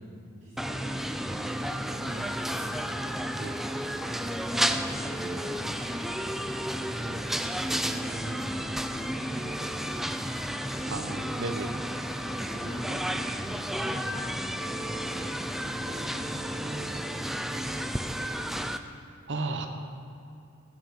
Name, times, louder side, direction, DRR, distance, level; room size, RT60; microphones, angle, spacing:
voice 1, 0.0-3.2 4.0-7.4 7.8-8.7 9.1-10.3 10.6-11.3 12.0-15.4 15.7-18.2, equal, 35° right, -13 dB, 3.0 m, -44 dB
sound 1, 0.6-18.8, equal, ahead, 0.3 m, -32 dB
voice 2, 10.9-11.7 19.3-19.7, right 2 dB, 60° right, 5 dB, 0.9 m, -33 dB
17.5 x 6.0 x 4.2 m, 2.6 s
head